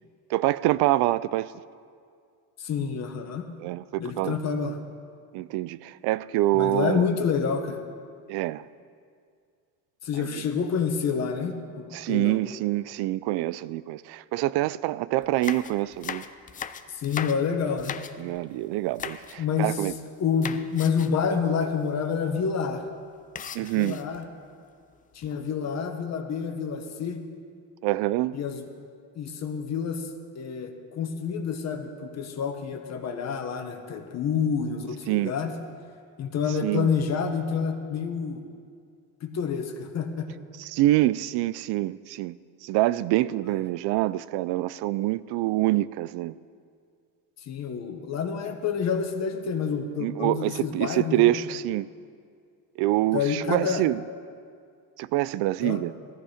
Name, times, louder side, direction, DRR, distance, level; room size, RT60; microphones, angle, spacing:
voice 1, 0.3-1.5 3.6-4.4 5.3-7.1 8.3-8.6 10.1-10.4 11.9-16.3 18.2-19.9 23.5-24.0 27.8-28.4 35.1-35.3 36.6-36.9 40.6-42.4 42.6-46.4 50.0-51.9 52.8-54.0 55.0-55.9, right 16 dB, 70° right, 0.6 m, -26 dB
voice 2, 2.6-3.5 4.0-4.8 6.5-7.8 10.0-12.4 16.9-18.0 19.4-19.7 20.2-22.8 23.6-24.2 25.1-27.2 28.3-28.6 29.1-30.1 30.3-35.5 36.2-38.4 39.2-40.3 47.5-51.3 53.1-53.8 55.6-55.8, left 6 dB, 40° left, 1.5 m, -28 dB
sound 1, 15.2-18.4 18.9-19.4 19.7-20.1 20.4-21.2 21.6-21.7 22.0-22.2 23.4-24.3 24.9-25.5, left 7 dB, 20° left, 0.4 m, -38 dB
18.5 x 14.0 x 5.0 m
cardioid pair, 150°, 40 cm